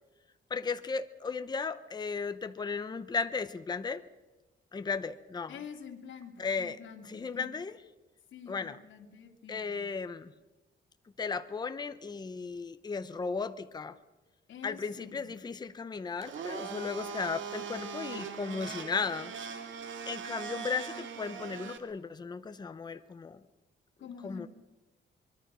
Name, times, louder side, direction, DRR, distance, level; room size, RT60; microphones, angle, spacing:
voice 1, 0.5-4.0 4.7-5.5 6.4-6.8 7.1-7.7 8.5-8.8 9.5-10.3 11.2-14.0 14.6-19.3 20.1-23.4 24.2-24.5, left 5 dB, 20° left, 10 dB, 0.8 m, -35 dB
voice 2, 5.5-7.5 8.3-9.9 14.5-15.3 24.0-24.5, left 7 dB, 80° left, 3 dB, 2.8 m, -47 dB
Domestic sounds home sounds, 16.2-21.8, right 6 dB, 85° right, 2.2 m, -40 dB
24.0 x 22.5 x 6.2 m, 1.1 s
wide cardioid pair, 175°, 19 cm